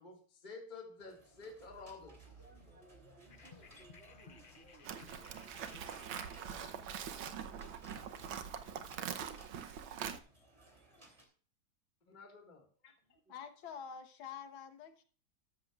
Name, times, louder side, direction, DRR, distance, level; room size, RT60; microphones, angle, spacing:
voice 1, 0.0-2.9 12.1-13.2, left 3 dB, 25° left, 2 dB, 1.9 m, -52 dB
sound 1, 1.0-11.3, right 2 dB, 15° right, 2.9 m, -62 dB
voice 2, 2.0-7.4 13.1-13.2, right 2 dB, 35° right, 2 dB, 2.7 m, -63 dB
sound 2, 3.3-9.3, left 6 dB, 50° left, 0.6 m, -60 dB
Livestock farm animals working animals, 4.8-10.2, right 8 dB, 75° right, 1.7 m, -43 dB
voice 3, 13.3-15.0, left 7 dB, 80° left, 8 dB, 2.1 m, -47 dB
13.5 x 13.0 x 2.4 m, 0.42 s
omnidirectional pair, 2.2 m